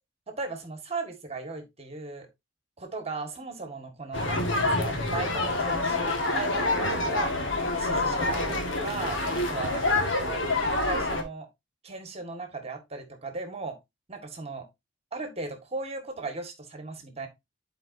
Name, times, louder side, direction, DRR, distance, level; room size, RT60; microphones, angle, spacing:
voice 1, 0.3-2.3 2.8-7.3 7.8-9.9 10.2-10.5 10.8-11.5 11.8-13.8 14.1-14.7 15.1-17.3, right 3 dB, 35° right, 1.8 m, -37 dB
sound 1, 4.1-11.2, left 2 dB, 75° left, 1.7 m, -27 dB
11.5 x 4.8 x 2.7 m
head